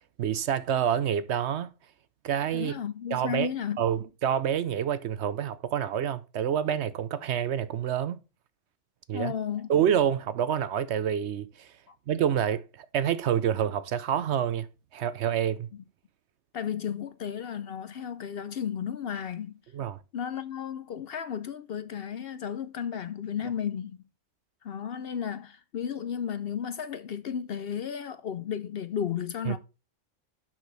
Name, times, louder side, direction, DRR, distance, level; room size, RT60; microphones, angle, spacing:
voice 1, 0.2-1.7 2.2-2.7 3.1-3.5 3.8-8.2 9.1-9.3 9.7-11.7 12.1-14.7 14.9-15.7 19.7-20.0 29.5-29.6, right 9 dB, 65° right, 0.8 m, -27 dB
voice 2, 2.5-3.9 9.1-9.7 11.9-12.0 15.7-15.8 16.5-19.6 20.1-24.0 24.6-29.6, left 8 dB, 60° left, 0.7 m, -33 dB
6.0 x 6.0 x 6.1 m
omnidirectional pair, 1.3 m